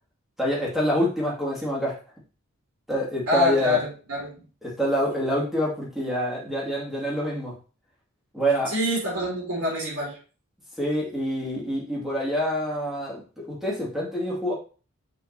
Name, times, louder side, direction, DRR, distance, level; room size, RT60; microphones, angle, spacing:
voice 1, 0.4-2.0 2.9-3.8 4.6-7.5 8.3-8.7 10.8-14.5, equal, ahead, -5 dB, 2.2 m, -26 dB
voice 2, 3.3-4.4 8.7-10.2, left 1 dB, 80° right, -5 dB, 3.4 m, -26 dB
6.4 x 6.1 x 2.8 m, 0.37 s
head